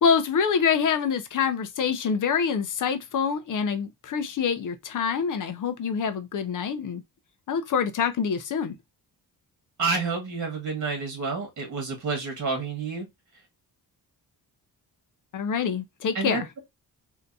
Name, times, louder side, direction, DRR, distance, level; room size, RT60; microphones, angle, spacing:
voice 1, 0.0-7.0 7.5-8.8 15.3-16.5, left 6 dB, 55° left, 0.6 m, -26 dB
voice 2, 9.8-13.1 16.2-16.6, right 4 dB, 50° right, 1.8 m, -29 dB
3.4 x 2.8 x 2.6 m
wide cardioid pair, 155°, 38 cm